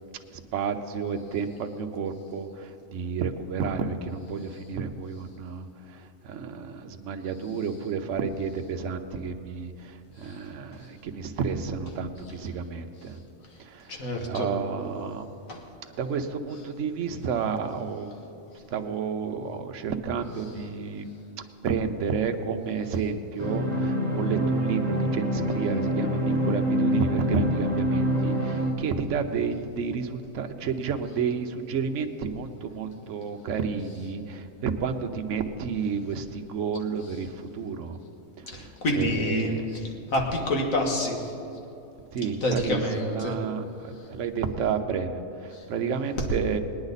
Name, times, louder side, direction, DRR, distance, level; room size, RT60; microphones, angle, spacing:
voice 1, 0.3-13.2 13.6-15.3 15.9-18.4 18.7-21.1 21.6-38.0 38.4-39.7 42.1-46.6, right 6 dB, 60° right, 6 dB, 1.1 m, -31 dB
voice 2, 13.9-14.5 15.5-15.6 38.5-41.3 42.4-43.3 45.5-45.6, left 1 dB, 65° left, 1 dB, 2.0 m, -28 dB
sound 1, 23.4-28.7, equal, 30° left, 1.7 m, -26 dB
20.5 x 9.7 x 4.1 m, 2.8 s
omnidirectional pair, 1.5 m